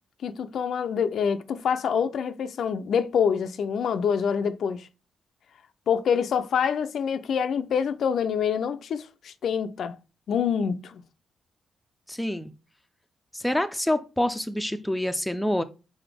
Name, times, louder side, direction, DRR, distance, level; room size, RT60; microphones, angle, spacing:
voice 1, 0.2-4.9 5.9-10.0 10.3-11.0, left 7 dB, 70° left, 0.4 m, -26 dB
voice 2, 12.1-12.5 13.3-15.6, left 1 dB, 5° left, 0.4 m, -26 dB
4.0 x 3.7 x 3.3 m
cardioid pair, 120°, 0 cm